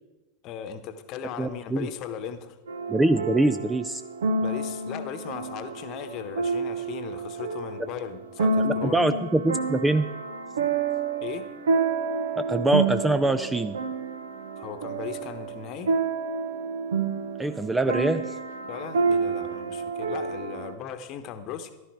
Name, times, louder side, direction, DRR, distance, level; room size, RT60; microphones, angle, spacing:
voice 1, 0.4-2.6 4.4-9.0 11.2-11.5 14.6-15.9 18.7-21.7, left 8 dB, 40° left, 10 dB, 1.1 m, -37 dB
voice 2, 1.4-1.9 2.9-4.0 8.6-10.1 12.3-13.7 17.4-18.3, right 2 dB, 10° right, 11 dB, 0.5 m, -24 dB
sound 1, 2.7-20.7, right 4 dB, 65° right, 1.0 m, -29 dB
14.5 x 12.0 x 4.6 m, 1.2 s
figure-of-eight pair, 90°, 0 cm